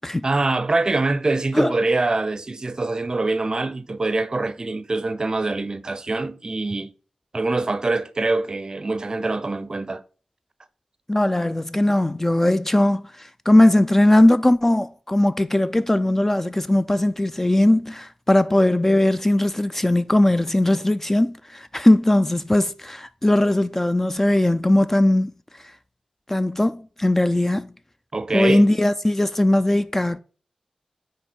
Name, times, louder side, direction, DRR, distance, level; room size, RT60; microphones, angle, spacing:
voice 1, 0.2-6.9 7.3-10.0 28.1-28.7, right 3 dB, 35° right, 0.5 m, -24 dB
voice 2, 11.1-25.3 26.3-27.7 28.3-30.2, left 1 dB, 15° left, 0.3 m, -19 dB
9.2 x 3.1 x 4.4 m
wide cardioid pair, 100°, 2 cm